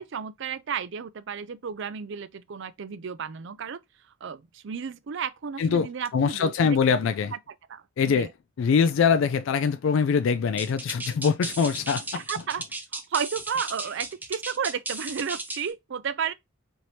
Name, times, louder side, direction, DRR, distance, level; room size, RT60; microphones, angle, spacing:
voice 1, 0.0-3.8 4.2-6.8 7.3-7.4 7.7-7.8 8.1-8.3 12.1-12.6 12.9-16.3, right 7 dB, 60° right, 0.5 m, -32 dB
voice 2, 6.1-7.3 8.0-8.3 8.6-12.4, left 6 dB, 65° left, 0.3 m, -23 dB
sound 1, 10.6-15.7, right 2 dB, 10° right, 0.5 m, -35 dB
4.5 x 3.3 x 2.7 m
head